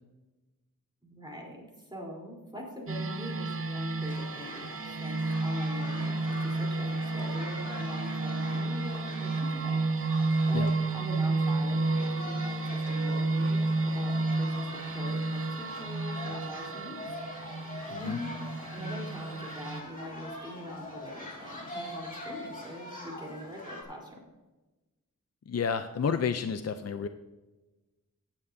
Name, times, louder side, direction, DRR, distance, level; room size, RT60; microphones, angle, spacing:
voice 1, 1.0-10.2 10.5-17.0 17.3-17.6 17.9-18.4 18.7-24.2, equal, 15° right, -2 dB, 3.7 m, -43 dB
sound 1, 2.9-19.8, right 3 dB, 40° right, 0.7 m, -31 dB
sound 2, 4.0-23.8, left 1 dB, 25° left, 3.3 m, -44 dB
voice 2, 25.5-27.1, left 6 dB, 50° left, 9 dB, 0.5 m, -30 dB
15.5 x 9.9 x 2.7 m, 1.1 s
wide cardioid pair, 65°, 34 cm